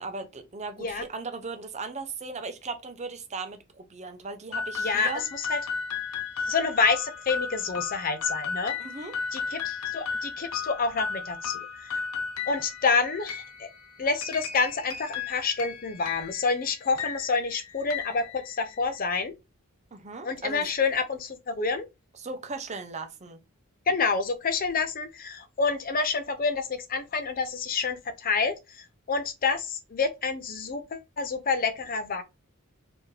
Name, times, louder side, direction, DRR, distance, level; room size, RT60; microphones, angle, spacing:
voice 1, 0.0-5.3 8.8-9.1 19.9-20.7 22.1-23.4, right 4 dB, 30° right, 0.7 m, -37 dB
sound 1, 4.5-19.0, left 6 dB, 90° left, 0.7 m, -35 dB
voice 2, 4.8-5.6 6.5-8.7 9.3-12.0 12.5-13.7 14.0-19.3 20.2-21.9 23.9-32.2, left 4 dB, 40° left, 0.6 m, -28 dB
4.4 x 2.8 x 3.2 m
head